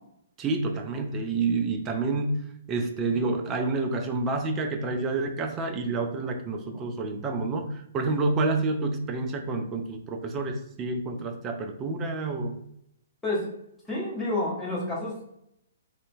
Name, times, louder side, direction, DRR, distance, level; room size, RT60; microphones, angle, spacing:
voice 1, 0.4-2.4 2.7-12.6, right 3 dB, 20° right, 4 dB, 0.3 m, -28 dB
voice 2, 13.9-15.2, left 1 dB, 5° left, -7 dB, 0.8 m, -29 dB
2.6 x 2.1 x 2.5 m, 0.77 s
figure-of-eight pair, 120°, 0 cm